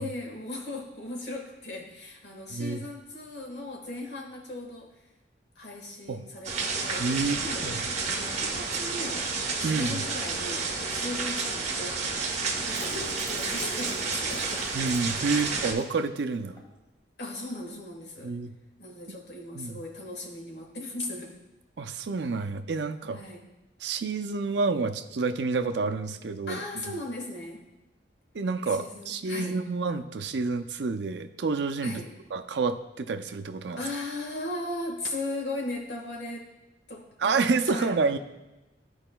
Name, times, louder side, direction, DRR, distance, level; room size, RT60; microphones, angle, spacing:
voice 1, 0.0-4.9 5.5-7.1 7.4-7.7 8.1-9.3 9.6-12.2 12.6-13.0 13.3-14.7 17.2-18.3 18.8-21.4 23.0-23.4 26.5-27.6 28.7-29.6 31.8-32.1 33.8-36.5 36.9-37.9, left 2 dB, 70° left, 0 dB, 1.5 m, -37 dB
voice 2, 2.5-2.8 6.1-6.2 7.0-7.8 9.6-10.0 14.7-16.6 18.2-18.5 19.1-19.2 19.5-19.8 21.8-23.2 23.8-27.0 28.3-32.0 32.3-33.8 37.2-38.2, right 4 dB, 75° right, 7 dB, 0.5 m, -29 dB
sound 1, 6.4-15.7, right 4 dB, 40° right, 0.9 m, -30 dB
sound 2, 12.7-15.8 16.2-16.3 16.6-16.7, left 2 dB, 15° left, 1.7 m, -42 dB
14.0 x 4.8 x 2.2 m, 1.0 s
head